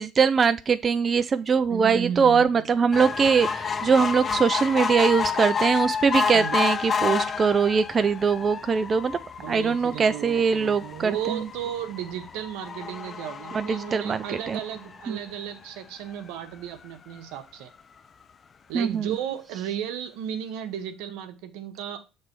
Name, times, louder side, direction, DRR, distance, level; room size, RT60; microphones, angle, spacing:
voice 1, 0.0-9.2 9.5-11.5 13.5-14.6 15.1-15.2 18.7-19.2, right 5 dB, 35° right, 0.3 m, -22 dB
voice 2, 1.7-2.6 6.3-6.5 9.4-17.7 18.7-22.0, right 10 dB, 80° right, 0.9 m, -34 dB
sound 1, 2.9-15.5 16.1-16.2 16.5-16.6 16.8-16.9, left 6 dB, 35° left, 0.5 m, -30 dB
6.7 x 3.3 x 4.4 m
cardioid pair, 105°, 0 cm